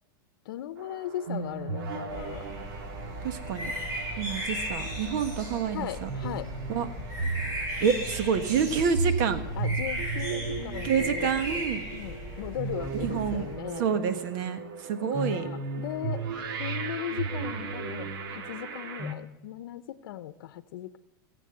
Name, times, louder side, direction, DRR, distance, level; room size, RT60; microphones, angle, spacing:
voice 1, 0.5-2.5 5.7-6.5 9.6-11.3 11.5-11.6 11.9-13.9 15.1-16.2 16.6-21.0, left 12 dB, 75° left, 14 dB, 0.8 m, -38 dB
sound 1, 0.8-19.1, right 4 dB, 80° right, 1.7 m, -36 dB
sound 2, 2.1-13.5, equal, 30° right, 6.4 m, -36 dB
voice 2, 3.2-3.7 4.2-6.1 6.7-6.9 7.8-9.4 10.8-11.8 13.0-13.5 13.8-15.5, right 7 dB, 60° right, 10 dB, 1.4 m, -28 dB
19.0 x 7.7 x 7.8 m, 0.97 s
supercardioid pair, 135°, 12 cm